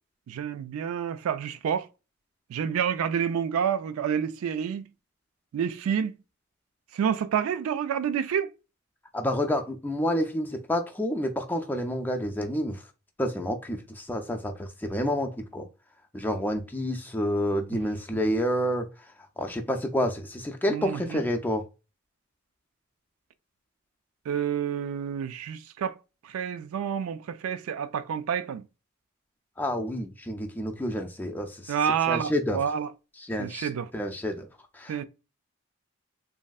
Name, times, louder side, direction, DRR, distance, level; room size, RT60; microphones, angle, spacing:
voice 1, 0.3-1.9 2.5-4.9 5.5-6.2 6.9-8.5 20.7-21.2 24.3-25.9 26.2-28.6 31.7-32.9 33.4-33.9 34.9-35.0, right 8 dB, 85° right, 0.3 m, -28 dB
voice 2, 9.1-12.8 13.2-15.7 16.1-18.9 19.4-21.6 29.6-31.7 32.1-32.6 33.2-33.7 33.9-34.5 34.7-35.0, equal, 10° left, 0.3 m, -29 dB
3.1 x 2.6 x 2.3 m
head